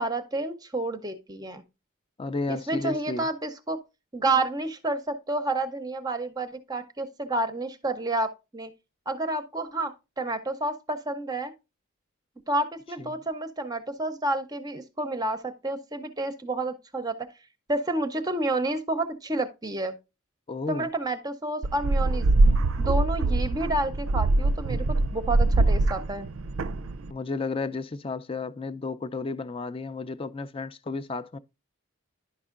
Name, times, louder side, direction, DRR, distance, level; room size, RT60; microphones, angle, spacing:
voice 1, 0.0-1.6 2.5-3.8 4.1-8.7 9.1-11.5 12.5-17.3 17.7-19.9 20.7-22.3 22.8-26.3, right 2 dB, 20° right, 0.6 m, -30 dB
voice 2, 2.2-3.3 20.5-20.9 27.1-31.4, left 3 dB, 25° left, 0.4 m, -32 dB
sound 1, 21.6-27.1, right 2 dB, 70° right, 0.4 m, -23 dB
10.5 x 5.4 x 2.4 m
head